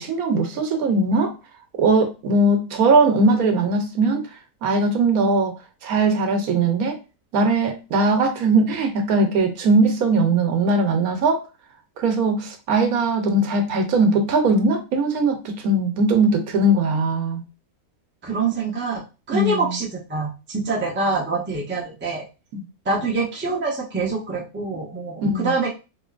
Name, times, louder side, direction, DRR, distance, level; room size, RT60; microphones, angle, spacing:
voice 1, 0.0-1.3 1.8-4.2 4.6-5.6 5.8-7.0 7.3-11.4 12.0-17.4 19.3-19.8 22.5-22.6 25.2-25.5, right 2 dB, 80° right, 1.2 m, -20 dB
voice 2, 18.2-22.2 22.8-25.7, right 3 dB, 15° right, 0.5 m, -25 dB
4.4 x 2.9 x 2.4 m
omnidirectional pair, 1.5 m